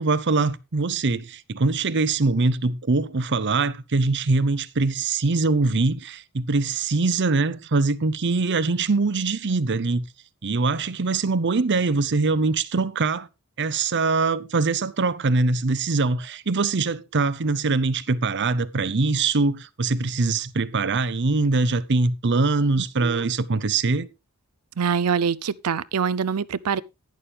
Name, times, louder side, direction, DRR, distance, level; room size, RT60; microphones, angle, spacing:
voice 1, 0.0-10.0 10.4-13.3 13.6-24.1, right 3 dB, 55° right, 0.7 m, -23 dB
voice 2, 24.8-26.8, right 6 dB, 85° right, 0.6 m, -24 dB
11.5 x 10.5 x 3.4 m
head